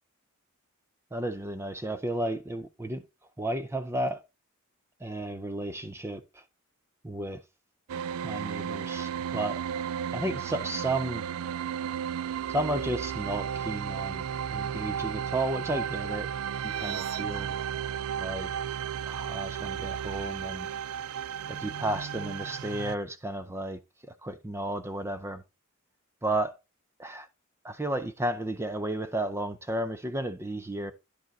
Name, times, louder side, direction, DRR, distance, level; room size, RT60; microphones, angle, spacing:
voice 1, 1.1-3.0 3.4-4.2 5.0-6.4 7.0-7.4 8.2-9.6 10.1-11.3 12.5-14.2 14.5-16.3 16.6-17.6 18.2-18.5 19.1-20.7 21.5-23.8 24.2-25.4 26.2-26.6 27.0-27.3 27.6-30.9, right 1 dB, 10° right, 0.5 m, -33 dB
sound 1, 7.9-23.0, right 8 dB, 70° right, 0.4 m, -34 dB
10.5 x 5.0 x 4.0 m
head